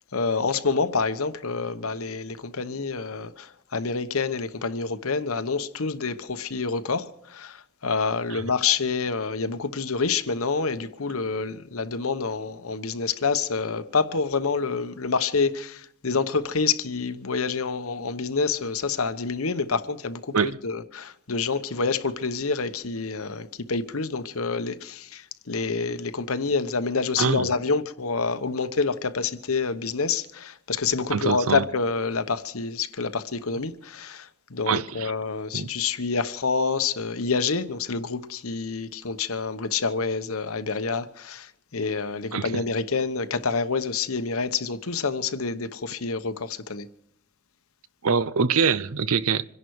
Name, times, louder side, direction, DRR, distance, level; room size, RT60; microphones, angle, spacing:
voice 1, 0.1-20.3 20.6-46.9, left 4 dB, 80° left, 1.0 m, -27 dB
voice 2, 27.2-27.5 31.1-31.6 34.7-35.1 35.5-35.7 42.3-42.6 48.0-49.5, right 5 dB, 80° right, 0.7 m, -24 dB
26.5 x 11.0 x 4.7 m
head